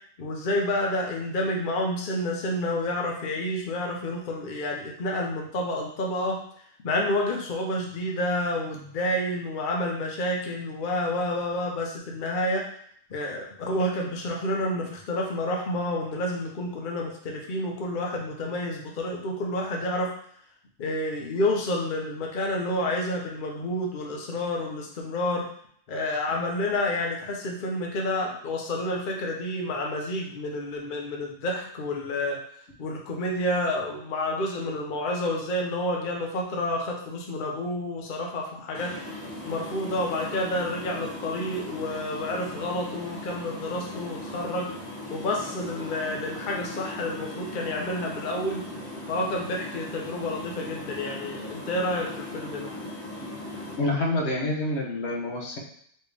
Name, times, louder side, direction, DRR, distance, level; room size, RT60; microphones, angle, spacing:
voice 1, 0.2-6.4 6.8-12.6 13.1-20.1 20.8-25.4 25.9-32.4 32.8-38.9 39.4-44.7 45.1-48.6 49.1-52.7, left 1 dB, 50° left, 0 dB, 0.8 m, -29 dB
sound 1, 38.7-53.7, left 1 dB, 15° left, 1.0 m, -38 dB
voice 2, 53.8-55.6, left 2 dB, 70° left, 0 dB, 1.1 m, -27 dB
4.4 x 3.3 x 3.3 m, 0.64 s
omnidirectional pair, 1.2 m